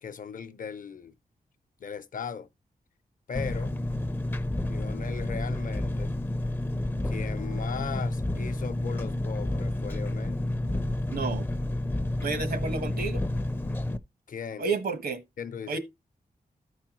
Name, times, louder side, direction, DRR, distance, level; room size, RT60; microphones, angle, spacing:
voice 1, 0.0-1.1 1.8-2.5 3.3-3.8 4.7-6.1 7.0-10.4 14.3-14.7 15.4-15.8, left 6 dB, 60° left, 0.7 m, -37 dB
Engine, 3.3-14.0, left 1 dB, 15° left, 0.4 m, -30 dB
voice 2, 11.1-11.5 12.2-13.2 14.6-15.2 15.7-15.8, right 4 dB, 80° right, 1.2 m, -30 dB
13.5 x 4.7 x 3.0 m
wide cardioid pair, 150°, 15 cm